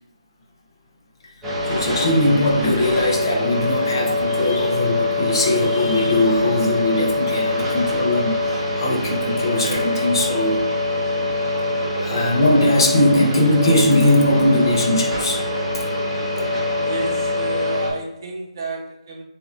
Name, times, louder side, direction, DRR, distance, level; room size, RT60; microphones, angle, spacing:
sound 1, 1.4-17.9, left 2 dB, 10° right, 0.9 m, -23 dB
voice 1, 1.7-10.6 12.0-15.4, left 1 dB, 40° left, 0 dB, 1.1 m, -20 dB
voice 2, 16.8-19.2, right 3 dB, 40° right, 1 dB, 0.9 m, -31 dB
6.9 x 3.0 x 2.5 m, 0.85 s
hypercardioid pair, 165°, 3 cm